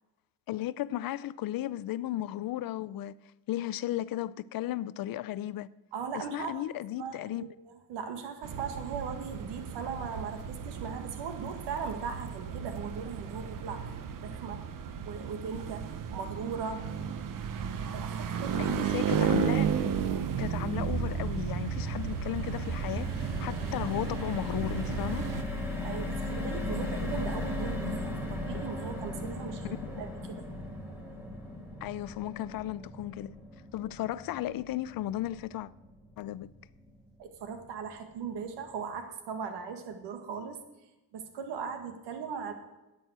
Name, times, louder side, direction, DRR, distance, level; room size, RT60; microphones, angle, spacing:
voice 1, 0.5-3.1 3.5-5.7 6.1-7.4 18.6-19.7 20.4-25.3 29.7-30.0 31.8-33.3 33.7-35.7 36.2-36.5, left 13 dB, 60° left, 0.6 m, -35 dB
voice 2, 5.9-6.6 7.0-13.9 14.2-14.6 15.0-16.9 17.9-18.9 25.8-30.5 37.2-40.6 41.1-42.5, right 6 dB, 85° right, 1.7 m, -38 dB
sound 1, 8.4-25.4, right 7 dB, 50° right, 1.1 m, -33 dB
sound 2, 20.8-37.1 37.5-37.7 37.9-38.1, left 2 dB, 5° right, 3.4 m, -38 dB
10.5 x 9.1 x 8.0 m
cardioid pair, 120°, 40 cm